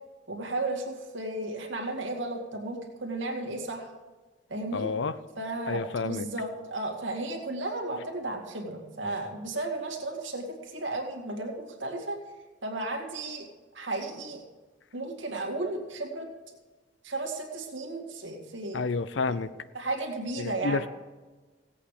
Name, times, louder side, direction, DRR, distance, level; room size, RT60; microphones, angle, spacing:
voice 1, 0.3-3.9 4.5-4.9 5.4-12.2 12.6-13.5 13.7-14.4 14.9-16.3 17.0-18.8 19.3-19.4 19.7-20.9, right 2 dB, 85° right, 2 dB, 2.2 m, -34 dB
voice 2, 4.7-5.2 5.7-6.3 18.7-19.5 20.4-20.9, left 4 dB, 75° left, 14 dB, 0.6 m, -29 dB
16.5 x 8.5 x 5.0 m, 1.3 s
head